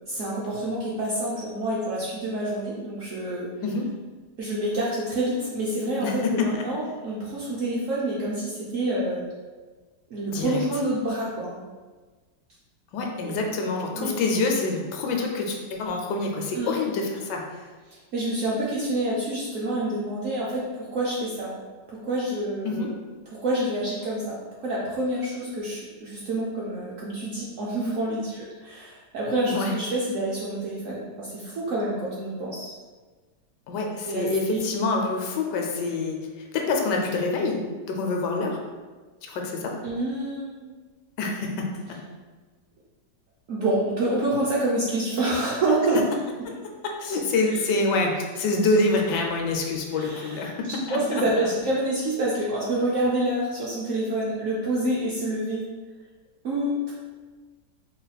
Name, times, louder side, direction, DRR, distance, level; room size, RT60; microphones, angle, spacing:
voice 1, 0.1-3.5 4.4-9.2 10.1-11.6 13.2-13.4 13.9-14.1 16.5-16.7 18.1-21.5 21.9-22.9 23.3-24.4 24.6-32.7 34.1-34.6 34.9-35.1 39.8-40.7 43.5-46.0 49.9-50.5 50.9-55.6 56.4-56.9, right 1 dB, 65° right, -6 dB, 0.8 m, -27 dB
voice 2, 6.0-6.7 10.3-10.6 12.9-17.4 22.6-22.9 29.4-29.7 33.7-38.6 39.2-39.7 41.2-41.7 46.5-46.6 47.0-51.5, left 3 dB, 75° left, 1 dB, 1.2 m, -26 dB
3.9 x 2.1 x 4.0 m, 1.4 s
omnidirectional pair, 1.9 m